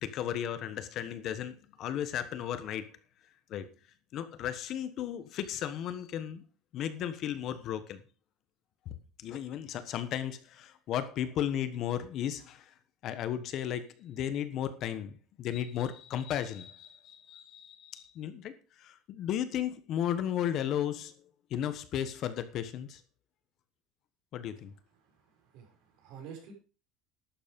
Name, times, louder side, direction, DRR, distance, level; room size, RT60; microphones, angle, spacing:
voice 1, 0.0-2.9 3.5-3.7 4.1-6.4 6.7-8.0 9.2-12.7 13.0-21.1 21.5-23.0 24.3-24.7, left 10 dB, 40° left, 11 dB, 1.2 m, -35 dB
voice 2, 25.2-26.5, right 7 dB, 60° right, 2 dB, 5.9 m, -49 dB
11.5 x 8.3 x 5.3 m, 0.35 s
cardioid pair, 170°, 0 cm